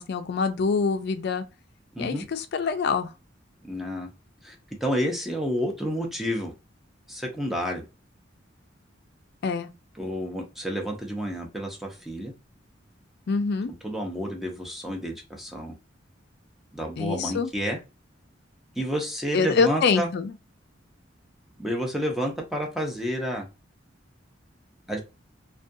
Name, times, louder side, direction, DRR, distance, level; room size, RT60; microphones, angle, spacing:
voice 1, 0.0-1.4 2.0-3.1 9.4-9.7 13.3-13.7 17.0-17.5 19.3-20.3, left 5 dB, 60° left, 0.4 m, -25 dB
voice 2, 3.6-4.1 4.4-4.5 4.8-6.5 7.1-7.9 10.0-12.3 13.8-15.7 16.7-17.8 18.8-20.1 21.6-23.4 24.9-25.0, equal, ahead, 0.6 m, -30 dB
2.4 x 2.3 x 2.6 m
head